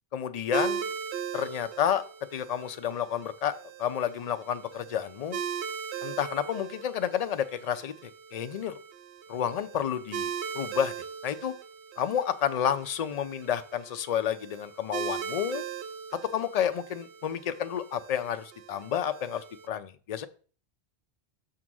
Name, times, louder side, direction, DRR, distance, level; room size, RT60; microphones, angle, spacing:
voice 1, 0.1-0.8 1.3-2.0 2.3-3.5 3.8-5.4 6.0-8.7 9.3-10.9 11.2-11.5 12.0-15.6 16.3-20.3, left 9 dB, 50° left, 0.5 m, -30 dB
sound 1, 0.5-19.7, right 7 dB, 85° right, 0.9 m, -39 dB
6.1 x 3.8 x 6.0 m
omnidirectional pair, 1.1 m